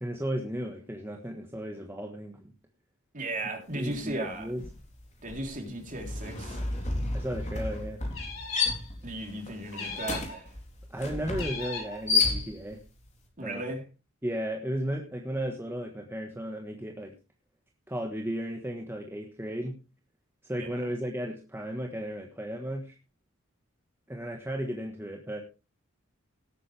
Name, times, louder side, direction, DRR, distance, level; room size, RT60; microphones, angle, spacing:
voice 1, 0.0-2.5 3.7-4.6 7.1-8.0 10.9-12.8 13.4-13.6 14.2-17.1 17.9-19.8 20.4-23.0 24.1-25.4, equal, 10° right, 2 dB, 1.4 m, -34 dB
voice 2, 3.1-4.5 5.2-6.6 9.0-10.5 13.4-13.8 20.6-20.8, right 1 dB, 35° right, 2 dB, 3.7 m, -36 dB
sound 1, 3.9-4.1 4.4-12.9, left 4 dB, 35° left, 3.8 m, -32 dB
sound 2, 8.1-8.8 9.7-10.4 11.3-12.0, left 4 dB, 65° left, 6.5 m, -39 dB
18.0 x 9.1 x 3.4 m, 0.30 s
head